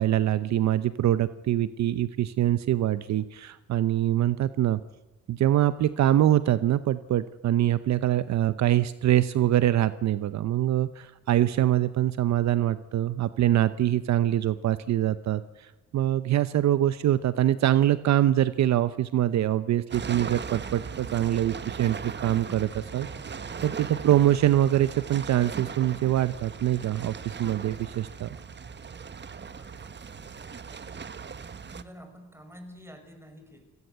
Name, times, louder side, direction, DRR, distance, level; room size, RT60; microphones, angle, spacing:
voice 1, 0.0-4.8 5.3-23.1 23.6-28.3, right 12 dB, 65° right, 14 dB, 0.8 m, -24 dB
sound 1, 19.9-31.8, right 6 dB, 35° right, 1.4 m, -39 dB
voice 2, 23.8-24.1 29.6-31.2 31.7-33.6, equal, 10° right, 6 dB, 5.9 m, -49 dB
29.5 x 18.0 x 8.1 m, 1.1 s
cardioid pair, 90°, 30 cm